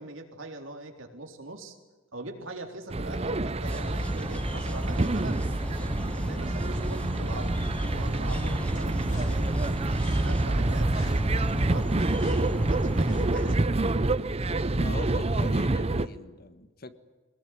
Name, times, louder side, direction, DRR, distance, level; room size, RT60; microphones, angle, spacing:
voice 1, 0.0-1.8 2.1-5.5 6.1-9.5 10.2-13.8, right 2 dB, 80° right, 3 dB, 3.9 m, -41 dB
sound 1, 2.9-16.1, right 2 dB, 30° right, 0.7 m, -27 dB
sound 2, 3.6-13.6, equal, 5° left, 1.4 m, -34 dB
sound 3, 8.7-13.6, left 5 dB, 85° left, 6.6 m, -53 dB
voice 2, 14.7-16.9, left 2 dB, 50° left, 10 dB, 1.6 m, -41 dB
22.5 x 20.5 x 9.7 m, 1.3 s
head